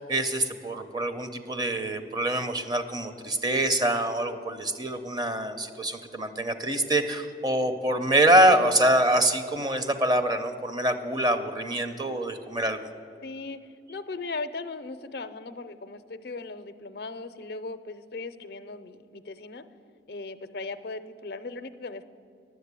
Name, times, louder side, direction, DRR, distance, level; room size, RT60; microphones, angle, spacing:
voice 1, 0.0-12.9, right 1 dB, 25° right, 8 dB, 0.6 m, -25 dB
voice 2, 13.2-13.6 13.9-19.6 20.1-22.0, left 3 dB, 60° left, 11 dB, 0.5 m, -38 dB
10.5 x 7.6 x 8.1 m, 2.4 s
head